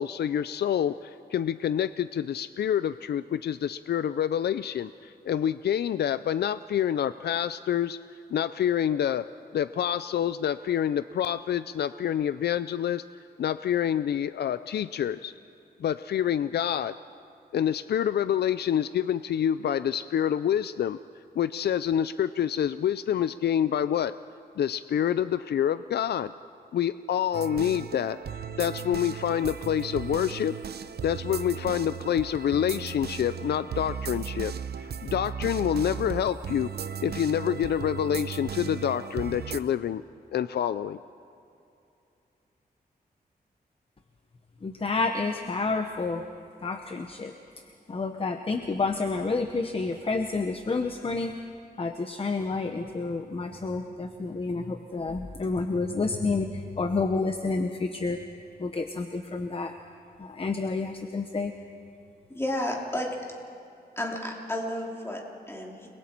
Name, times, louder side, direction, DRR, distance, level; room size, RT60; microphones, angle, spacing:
voice 1, 0.0-8.0 8.3-9.2 9.5-13.0 13.4-15.3 15.8-16.9 17.5-21.0 21.4-24.1 24.6-26.3 26.7-28.2 28.6-30.6 31.0-36.7 37.0-40.0 40.3-41.0, left 9 dB, 80° left, 14 dB, 0.4 m, -27 dB
sound 1, 27.3-39.6, right 8 dB, 75° right, 0.7 m, -36 dB
voice 2, 44.6-46.2 46.6-47.3 47.9-51.3 51.8-58.2 58.6-59.7 60.2-61.5, left 3 dB, 35° left, 6 dB, 0.9 m, -29 dB
voice 3, 62.3-63.3 64.0-65.9, left 1 dB, 15° left, -1 dB, 3.1 m, -32 dB
30.0 x 22.0 x 4.5 m, 2.7 s
wide cardioid pair, 110°, 17 cm